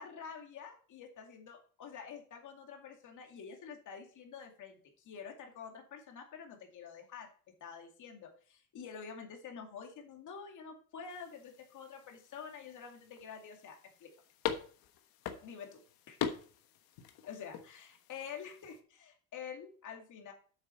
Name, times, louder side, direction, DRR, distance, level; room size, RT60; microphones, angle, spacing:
voice 1, 0.0-7.3 7.6-14.1 15.4-15.8 16.1-16.2 17.2-20.3, left 6 dB, 55° left, 3 dB, 2.4 m, -48 dB
sound 1, 11.1-18.8, left 9 dB, 75° left, 1.3 m, -43 dB
8.2 x 6.9 x 4.3 m, 0.42 s
cardioid pair, 125°, 36 cm